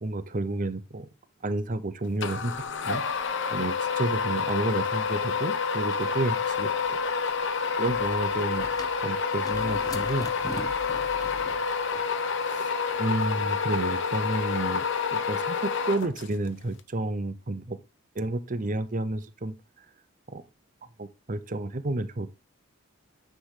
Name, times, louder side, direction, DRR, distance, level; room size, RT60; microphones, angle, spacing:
voice 1, 0.0-1.1 1.4-3.0 3.5-6.7 7.8-8.7 9.0-10.3 12.5-12.7 13.0-14.8 15.1-17.8 18.2-19.5 20.3-20.4 21.0-22.3, right 2 dB, 40° right, 0.7 m, -30 dB
sound 1, 2.2-16.5, left 5 dB, 60° left, 0.8 m, -28 dB
sound 2, 7.9-15.0, left 2 dB, 20° left, 0.6 m, -43 dB
9.2 x 3.3 x 5.8 m
head